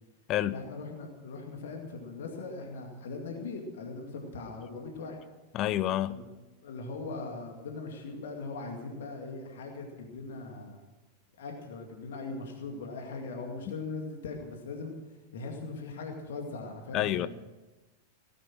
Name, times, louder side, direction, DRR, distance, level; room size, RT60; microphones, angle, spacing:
voice 1, 0.5-5.2 6.1-6.2 6.6-10.8 11.4-14.9 15.3-17.3, left 3 dB, 60° left, 2 dB, 2.2 m, -40 dB
voice 2, 5.5-6.1 16.9-17.3, left 13 dB, 35° left, 17 dB, 0.4 m, -28 dB
17.0 x 10.5 x 6.1 m, 1.1 s
figure-of-eight pair, 90°, 0 cm